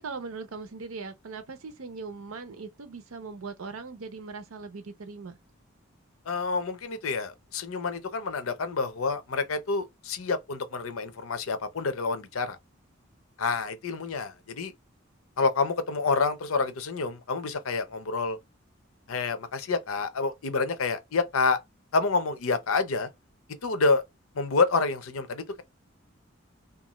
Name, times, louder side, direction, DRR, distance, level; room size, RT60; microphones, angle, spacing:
voice 1, 0.0-5.4, right 4 dB, 85° right, 0.6 m, -40 dB
voice 2, 6.3-12.6 13.4-14.7 15.4-18.4 19.1-21.6 21.9-23.1 23.6-24.0 24.3-25.6, left 4 dB, 85° left, 0.6 m, -28 dB
2.5 x 2.3 x 3.0 m
head